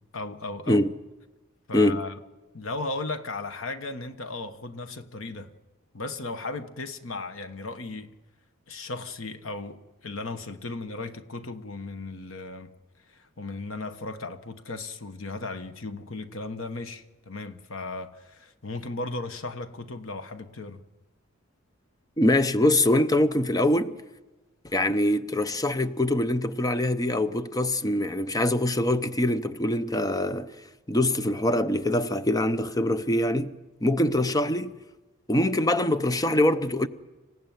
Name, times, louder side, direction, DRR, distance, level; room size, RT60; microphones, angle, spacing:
voice 1, 0.1-0.8 1.7-2.2 2.5-5.5 5.9-8.1 8.7-12.7 13.1-20.8, left 3 dB, 80° left, 1.3 m, -36 dB
voice 2, 1.7-2.0 22.2-24.0 24.7-30.5 30.9-33.5 33.8-34.7 35.3-36.9, left 1 dB, 20° left, 0.7 m, -24 dB
27.0 x 15.5 x 9.4 m
head